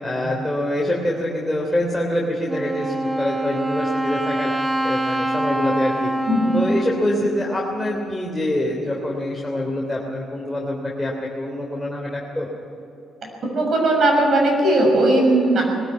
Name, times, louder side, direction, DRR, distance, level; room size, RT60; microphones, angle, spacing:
voice 1, 0.0-4.5 4.8-6.1 6.5-12.5, left 1 dB, 5° left, -3 dB, 3.3 m, -25 dB
Wind instrument woodwind instrument, 2.5-8.2, right 1 dB, 10° right, 1.3 m, -25 dB
voice 2, 13.4-15.6, right 1 dB, 55° right, 1 dB, 6.5 m, -18 dB
20.5 x 14.0 x 9.3 m, 2.8 s
cardioid pair, 90°, 0 cm